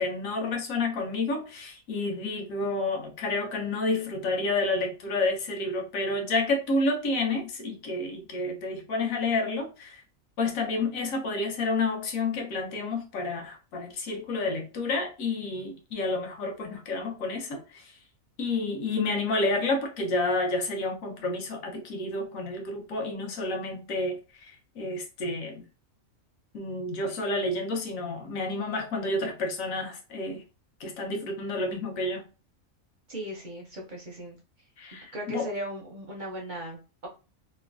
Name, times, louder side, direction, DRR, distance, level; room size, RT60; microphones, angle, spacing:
voice 1, 0.0-10.0 10.4-17.8 18.4-24.2 24.4-25.6 26.5-30.4 30.8-32.2 34.8-35.5, left 2 dB, 75° left, 1.1 m, -30 dB
voice 2, 33.1-34.4 35.1-37.1, right 1 dB, 55° right, 0.5 m, -37 dB
3.0 x 2.1 x 2.4 m
omnidirectional pair, 1.4 m